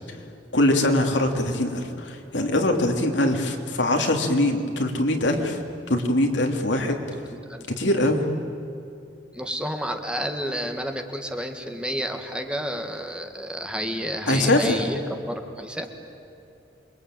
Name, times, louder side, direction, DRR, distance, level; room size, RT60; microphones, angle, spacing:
voice 1, 0.5-5.6 5.9-7.2 7.8-8.2 14.3-14.8, left 1 dB, 70° left, 3 dB, 3.1 m, -22 dB
voice 2, 7.3-7.7 9.3-15.9, equal, 5° right, 5 dB, 1.8 m, -31 dB
28.0 x 23.5 x 9.1 m, 2.7 s
head